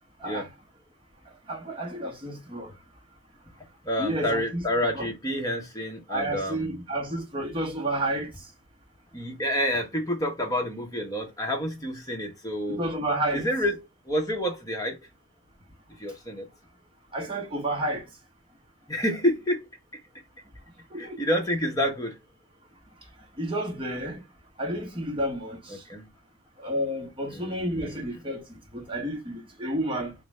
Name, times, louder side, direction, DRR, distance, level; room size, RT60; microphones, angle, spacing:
voice 1, 1.5-2.7 4.0-4.6 4.9-5.1 6.1-8.3 12.7-13.5 17.1-18.0 20.9-21.2 23.4-24.2 24.6-25.8 26.6-28.4 28.7-30.1, right 1 dB, 25° right, 1.0 m, -30 dB
voice 2, 3.8-6.8 9.1-12.8 13.3-15.0 16.0-16.5 18.9-19.7 21.0-22.2 25.7-26.1 27.3-28.0, equal, 15° left, 0.9 m, -29 dB
3.9 x 2.5 x 3.2 m
head